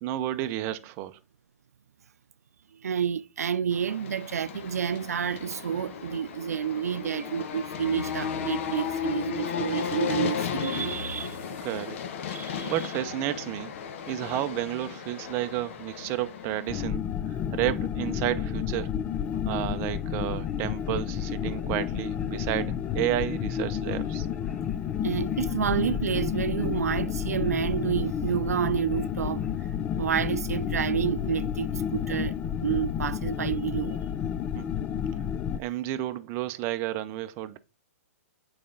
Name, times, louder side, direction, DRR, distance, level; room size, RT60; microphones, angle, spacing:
voice 1, 0.0-1.2 11.6-12.0 12.6-13.7 14.1-18.9 19.4-24.3 34.5-34.7 35.6-37.6, right 14 dB, 30° right, 0.6 m, -31 dB
voice 2, 2.7-11.4 12.3-12.7 25.0-29.7 30.0-34.0, right 8 dB, 85° right, 0.4 m, -29 dB
sound 1, 3.7-16.8, left 7 dB, 55° left, 1.0 m, -35 dB
sound 2, 16.7-35.6, left 9 dB, 20° left, 0.3 m, -31 dB
Conversation, 19.0-29.5, left 2 dB, 80° left, 2.2 m, -55 dB
8.4 x 4.3 x 3.8 m
hypercardioid pair, 135°, 8 cm